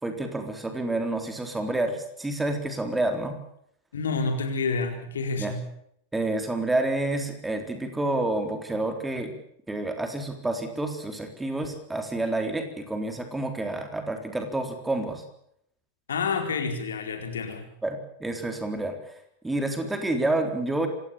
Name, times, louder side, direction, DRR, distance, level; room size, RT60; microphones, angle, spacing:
voice 1, 0.0-3.4 5.4-5.5 6.1-9.3 9.7-15.2 17.8-19.1 19.4-20.9, right 2 dB, 10° right, 6 dB, 3.9 m, -29 dB
voice 2, 3.9-5.6 16.1-17.6, left 4 dB, 65° left, 6 dB, 4.3 m, -28 dB
26.5 x 17.5 x 7.2 m, 0.70 s
figure-of-eight pair, 90°, 0 cm